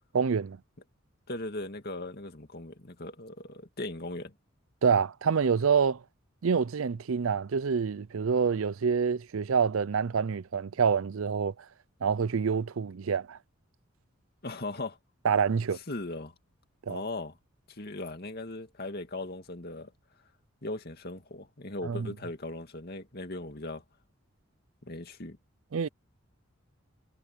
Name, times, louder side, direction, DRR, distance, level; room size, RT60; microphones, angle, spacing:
voice 1, 0.1-0.6 4.8-6.0 6.4-11.5 12.0-13.4 15.2-15.8 16.9-17.0 21.9-22.1 25.7-25.9, right 6 dB, 75° right, 0.5 m, -27 dB
voice 2, 1.3-4.3 14.4-15.0 15.9-16.3 16.9-17.3 17.7-19.9 20.6-23.8 24.8-25.4, left 2 dB, 50° left, 2.3 m, -38 dB
head